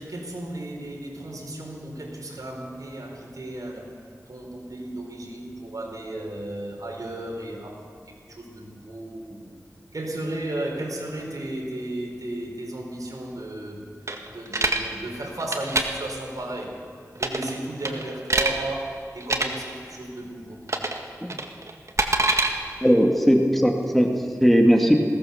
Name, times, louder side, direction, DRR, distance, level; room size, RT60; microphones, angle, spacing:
voice 1, 0.0-4.0 4.3-7.9 8.3-9.5 9.9-13.8 14.2-16.8 17.1-20.6, right 1 dB, 70° right, 0 dB, 4.5 m, -34 dB
Coin Drop, 14.1-14.8 15.4-15.8 17.2-17.5 17.8-18.5 19.2-19.5 20.7-21.0 21.3-22.5, right 2 dB, 55° right, 1.9 m, -24 dB
voice 2, 22.8-25.0, equal, 5° left, 1 dB, 2.1 m, -19 dB
20.5 x 18.0 x 7.1 m, 2.1 s
wide cardioid pair, 75°, 6 cm